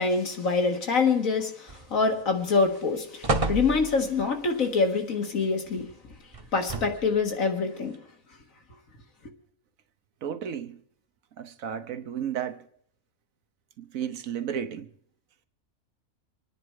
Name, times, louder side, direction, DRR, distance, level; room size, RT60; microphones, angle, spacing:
voice 1, 0.0-5.9 6.5-8.0, left 4 dB, 80° left, 2.2 m, -25 dB
sound 1, 1.7-2.2 2.6-2.8 3.2-4.2 6.3-7.2 7.9-8.0, right 3 dB, 30° right, 0.8 m, -30 dB
voice 2, 10.2-10.8 11.4-12.6 13.8-14.9, right 8 dB, 85° right, 1.3 m, -33 dB
25.5 x 9.9 x 4.8 m
omnidirectional pair, 1.4 m